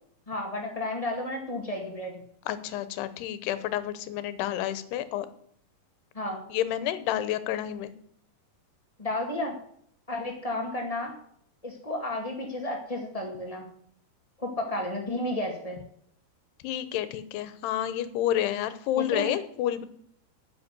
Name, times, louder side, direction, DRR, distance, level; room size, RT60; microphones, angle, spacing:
voice 1, 0.3-2.2 6.1-6.4 9.0-9.5 10.1-11.1 11.6-13.7 14.4-15.8 19.0-19.3, left 1 dB, 40° left, 0 dB, 0.5 m, -32 dB
voice 2, 2.5-5.3 6.5-7.9 16.6-19.9, left 12 dB, 90° left, 13 dB, 3.0 m, -29 dB
9.9 x 8.9 x 8.1 m, 0.66 s
omnidirectional pair, 4.6 m